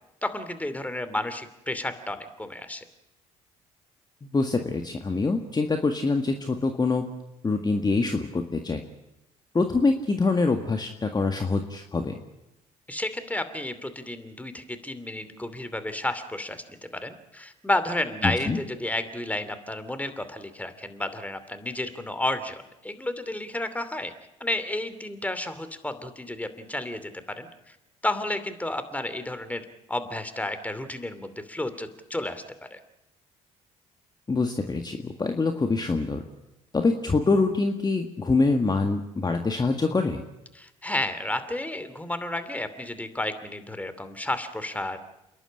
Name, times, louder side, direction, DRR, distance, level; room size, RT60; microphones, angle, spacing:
voice 1, 0.2-2.8 12.9-24.1 24.4-27.7 28.0-32.4 32.7-32.8 40.6-45.0, left 1 dB, 10° left, 10 dB, 2.7 m, -32 dB
voice 2, 4.2-7.1 7.4-8.8 9.5-12.2 18.2-18.6 34.3-36.2 36.7-40.2, left 3 dB, 25° left, 5 dB, 1.8 m, -25 dB
28.0 x 11.5 x 10.0 m, 0.90 s
hypercardioid pair, 60°, 16 cm